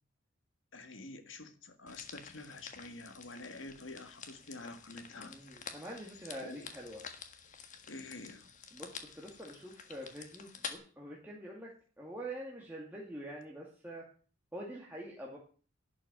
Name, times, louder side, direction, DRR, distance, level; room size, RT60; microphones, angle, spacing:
voice 1, 0.7-5.4 6.4-6.7 7.9-8.5, left 2 dB, 75° left, 8 dB, 1.9 m, -48 dB
sound 1, 1.9-10.7, left 6 dB, 40° left, 1.6 m, -49 dB
voice 2, 5.1-7.1 8.7-11.7 12.0-14.1 14.5-15.4, right 1 dB, 10° right, -3 dB, 2.2 m, -45 dB
11.5 x 6.1 x 9.4 m, 0.40 s
head